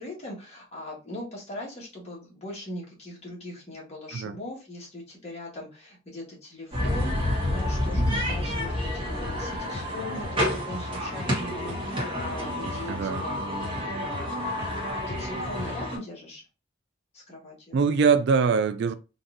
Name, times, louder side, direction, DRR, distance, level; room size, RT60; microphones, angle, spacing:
voice 1, 0.0-16.4 17.1-17.8, left 1 dB, 35° left, 1.5 m, -40 dB
sound 1, 6.7-16.0, left 1 dB, 25° right, 1.2 m, -29 dB
voice 2, 12.9-13.2 17.7-18.9, right 5 dB, 60° right, 0.3 m, -23 dB
4.0 x 2.6 x 2.5 m
head